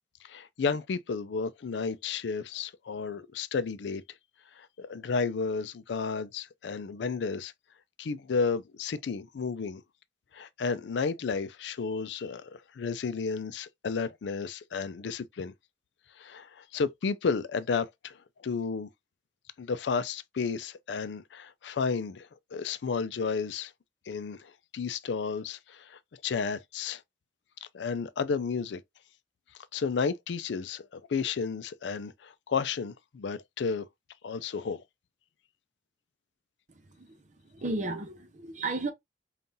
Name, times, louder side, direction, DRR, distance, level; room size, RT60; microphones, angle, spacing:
voice 1, 0.2-4.0 4.6-7.5 8.0-9.8 10.3-15.5 16.2-18.2 18.4-18.9 19.6-23.7 24.1-27.0 27.7-28.8 29.7-33.9 34.2-34.8, left 5 dB, 85° left, 0.4 m, -32 dB
voice 2, 37.5-38.9, right 2 dB, 45° right, 0.8 m, -33 dB
5.3 x 2.4 x 2.6 m
head